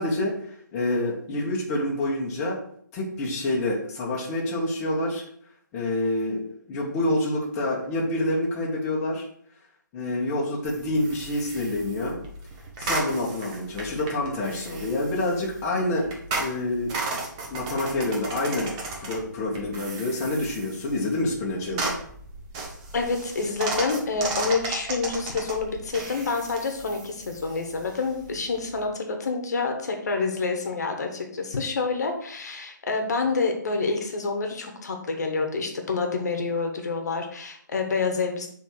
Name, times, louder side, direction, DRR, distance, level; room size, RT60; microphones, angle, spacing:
voice 1, 0.0-2.6 2.9-5.3 5.7-9.2 9.9-12.2 12.8-16.1 16.4-16.9 17.5-22.0, left 1 dB, 15° left, -4 dB, 1.0 m, -27 dB
sound 1, 10.6-28.9, right 3 dB, 20° right, 0.8 m, -35 dB
voice 2, 22.9-38.5, left 4 dB, 55° left, 4 dB, 1.1 m, -28 dB
6.3 x 3.5 x 4.4 m, 0.63 s
hypercardioid pair, 160°, 11 cm